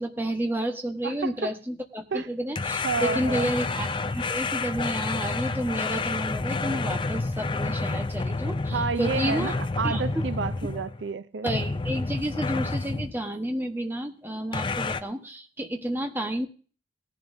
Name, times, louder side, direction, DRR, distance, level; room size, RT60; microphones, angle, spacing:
voice 1, 0.0-9.5 9.8-10.2 11.4-16.5, right 1 dB, 10° right, 1.2 m, -31 dB
voice 2, 1.0-1.5 2.1-2.3 2.8-3.5 8.7-11.5, right 4 dB, 80° right, 0.5 m, -30 dB
sound 1, 2.6-11.0 11.5-13.2 14.5-15.0, left 3 dB, 25° left, 0.4 m, -29 dB
18.0 x 10.5 x 2.7 m
head